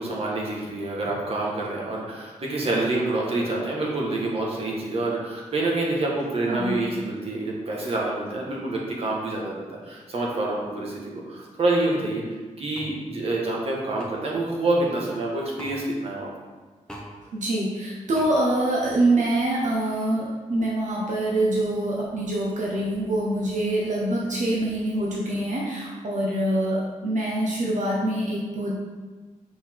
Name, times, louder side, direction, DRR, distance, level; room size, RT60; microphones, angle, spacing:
voice 1, 0.0-16.3, right 2 dB, 50° right, -3 dB, 1.3 m, -27 dB
voice 2, 6.5-6.8 17.3-28.8, right 1 dB, 70° right, -4 dB, 1.1 m, -25 dB
sound 1, 12.7-12.9 14.0-14.1 15.6-15.8 16.9-17.1 18.1-18.3, equal, 5° left, 0.8 m, -40 dB
6.9 x 4.8 x 3.6 m, 1.3 s
wide cardioid pair, 165°, 13 cm